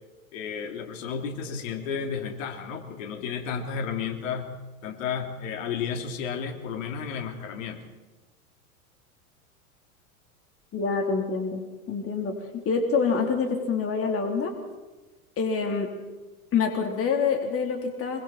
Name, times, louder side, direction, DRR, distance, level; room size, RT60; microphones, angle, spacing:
voice 1, 0.3-4.5 4.8-7.9, left 6 dB, 60° left, 5 dB, 3.3 m, -32 dB
voice 2, 10.7-11.6 11.9-14.5 15.4-15.9 16.5-18.2, left 5 dB, 30° left, 3 dB, 3.8 m, -26 dB
25.0 x 24.0 x 4.4 m, 1.2 s
hypercardioid pair, 100°, 44 cm